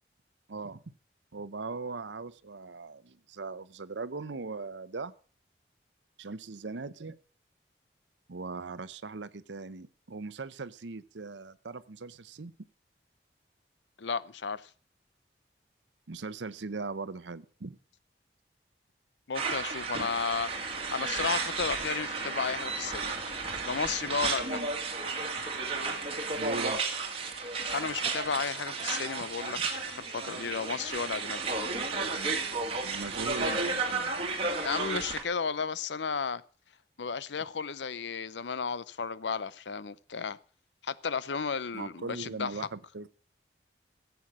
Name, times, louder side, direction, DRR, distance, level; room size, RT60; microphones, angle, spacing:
voice 1, 0.5-0.8 1.3-5.1 6.2-7.2 8.3-12.5 16.1-17.8 26.4-26.8 32.1-32.4 32.8-34.1 41.7-43.1, right 3 dB, 85° right, 0.7 m, -39 dB
voice 2, 14.0-14.7 19.3-20.5 20.9-23.1 23.7-24.6 27.7-29.6 29.8-31.4 34.6-36.4 37.0-40.4 40.8-42.5, left 5 dB, 80° left, 0.6 m, -33 dB
sound 1, 19.3-35.2, right 4 dB, 30° right, 2.0 m, -33 dB
16.0 x 8.2 x 6.1 m
head